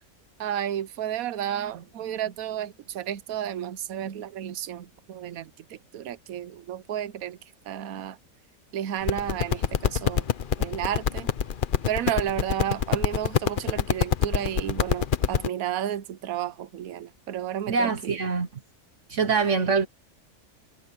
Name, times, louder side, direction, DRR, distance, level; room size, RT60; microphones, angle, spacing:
voice 1, 0.4-7.4 7.6-8.2 8.7-10.3 10.6-11.3 11.9-18.2, right 10 dB, 80° right, 1.2 m, -32 dB
sound 1, 9.0-15.5, left 8 dB, 45° left, 0.8 m, -25 dB
voice 2, 17.7-18.5 19.1-19.9, right 5 dB, 60° right, 1.3 m, -24 dB
omnidirectional pair, 1.5 m